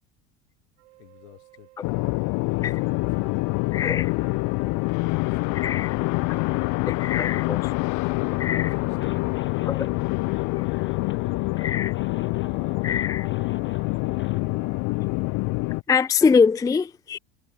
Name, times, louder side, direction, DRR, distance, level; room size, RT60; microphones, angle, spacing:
sound 1, 0.8-15.1, right 20 dB, 85° right, 5.1 m, -53 dB
voice 1, 1.0-3.8 4.9-7.3 8.5-11.1, left 22 dB, 85° left, 5.7 m, -52 dB
sound 2, 1.8-15.8, left 27 dB, 60° left, 0.7 m, -26 dB
voice 2, 3.7-4.1 5.5-6.0 6.9-7.7 8.4-8.7 9.7-9.9 11.6-11.9 12.8-13.3 15.9-17.2, left 5 dB, 10° left, 0.4 m, -23 dB
sound 3, 8.9-14.4, left 8 dB, 35° left, 7.4 m, -49 dB
supercardioid pair, 100°, 34 cm